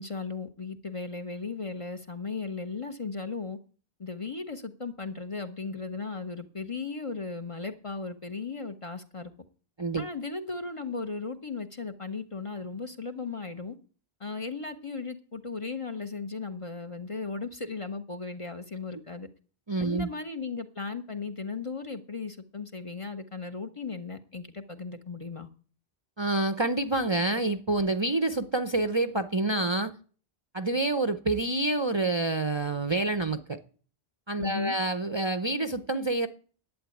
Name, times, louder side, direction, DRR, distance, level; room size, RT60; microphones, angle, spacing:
voice 1, 0.0-3.6 4.0-9.3 10.0-13.8 14.2-19.3 19.8-25.5 34.4-34.8, left 4 dB, 35° left, 0.9 m, -36 dB
voice 2, 19.7-20.1 26.2-29.9 30.5-33.6 34.3-36.3, right 2 dB, 30° right, 0.7 m, -27 dB
11.5 x 8.6 x 8.4 m
omnidirectional pair, 1.1 m